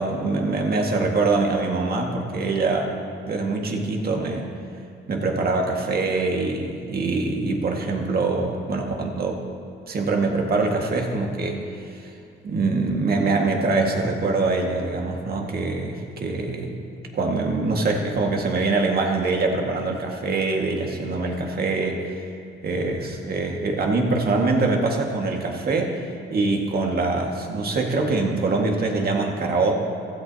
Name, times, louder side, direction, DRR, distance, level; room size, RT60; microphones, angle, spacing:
voice 1, 0.0-2.9 3.3-4.5 5.1-9.4 9.9-11.6 11.9-12.0 12.4-16.8 17.1-22.2 22.6-26.0 26.3-29.8, right 3 dB, 50° right, 1 dB, 1.8 m, -24 dB
15.5 x 13.5 x 2.9 m, 2.6 s
cardioid pair, 90°, 20 cm